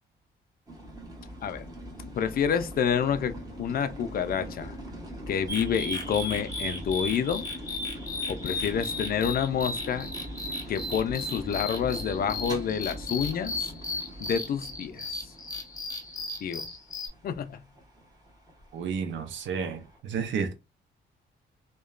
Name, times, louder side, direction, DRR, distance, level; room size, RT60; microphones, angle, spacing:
sound 1, 0.7-20.0, equal, 20° right, 1.1 m, -42 dB
voice 1, 2.1-4.8 5.3-7.4 8.3-10.1 10.7-13.5 14.2-15.1 16.4-16.7 17.2-17.6, left 8 dB, 50° left, 0.4 m, -28 dB
sound 2, 5.5-17.1, left 2 dB, 20° left, 0.9 m, -35 dB
voice 2, 18.7-20.5, right 6 dB, 70° right, 0.6 m, -31 dB
2.8 x 2.2 x 2.3 m
cardioid pair, 90°, 20 cm